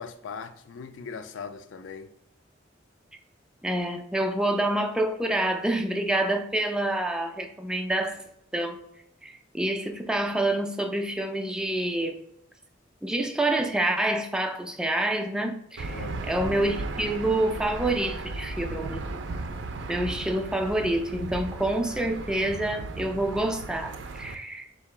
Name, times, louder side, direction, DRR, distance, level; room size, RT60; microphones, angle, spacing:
voice 1, 0.0-2.1 15.9-16.3, left 5 dB, 85° left, 0.4 m, -39 dB
voice 2, 3.6-8.2 8.5-8.8 9.2-12.2 13.0-19.0 19.9-24.7, right 1 dB, 5° right, 0.3 m, -27 dB
Aircraft / Engine, 15.8-24.3, right 3 dB, 70° right, 0.4 m, -36 dB
3.7 x 2.8 x 4.4 m
head